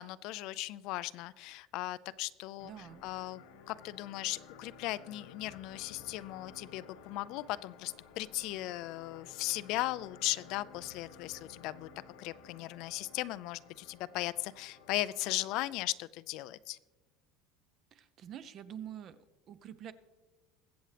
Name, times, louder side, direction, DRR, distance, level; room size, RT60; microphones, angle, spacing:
voice 1, 0.0-11.9 12.2-16.8, left 17 dB, 50° left, 17 dB, 0.3 m, -37 dB
sound 1, 2.6-15.9, left 6 dB, 75° left, 1.5 m, -55 dB
voice 2, 2.6-3.0 17.9-19.2 19.5-19.9, right 9 dB, 35° right, 13 dB, 0.5 m, -46 dB
22.0 x 7.9 x 3.3 m, 1.2 s
cardioid pair, 165°, 0 cm